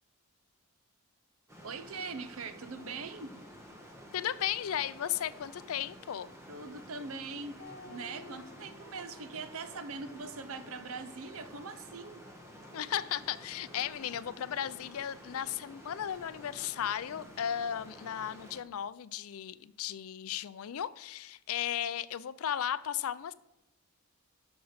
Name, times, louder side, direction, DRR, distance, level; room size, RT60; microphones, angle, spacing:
sound 1, 1.5-18.6, equal, 10° right, 1.3 m, -51 dB
voice 1, 1.6-3.4 6.5-12.2, right 4 dB, 65° right, 0.7 m, -42 dB
voice 2, 4.1-6.3 12.7-23.3, left 10 dB, 70° left, 0.4 m, -35 dB
sound 2, 7.6-13.3, left 3 dB, 40° left, 1.4 m, -55 dB
8.1 x 6.2 x 6.4 m
head